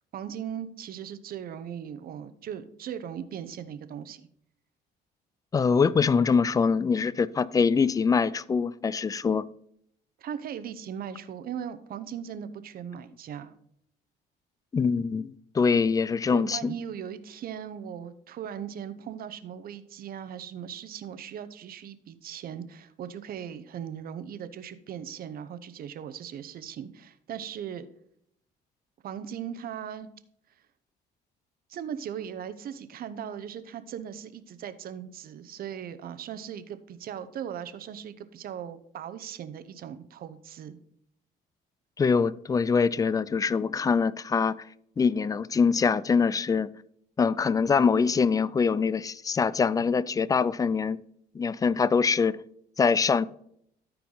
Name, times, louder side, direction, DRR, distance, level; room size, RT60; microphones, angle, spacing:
voice 1, 0.1-4.2 10.2-13.5 16.3-27.9 29.0-30.1 31.7-40.8, right 9 dB, 55° right, 0.8 m, -38 dB
voice 2, 5.5-9.5 14.7-16.7 42.0-44.6 45.0-46.7 47.2-51.0 51.3-52.4 52.8-53.3, left 5 dB, 20° left, 0.3 m, -24 dB
13.0 x 4.6 x 3.9 m
cardioid pair, 105°, 18 cm